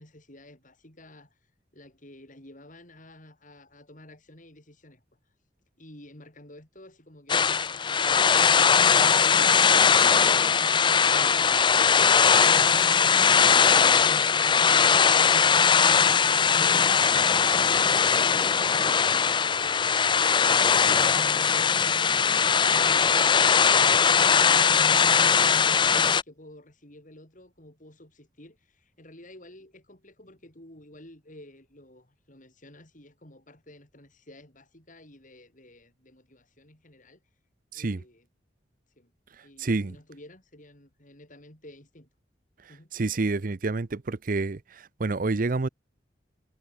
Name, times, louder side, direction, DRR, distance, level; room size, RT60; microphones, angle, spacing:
voice 1, 0.0-5.0 5.8-10.4 10.8-12.5 13.1-24.0 24.2-37.2 37.7-38.3 39.0-39.1 39.4-42.1 42.7-42.9, left 1 dB, 45° left, 6.9 m, -50 dB
sound 1, 7.3-26.2, left 6 dB, 25° left, 0.5 m, -20 dB
voice 2, 39.4-40.0 42.6-45.7, right 3 dB, 50° right, 0.6 m, -29 dB
head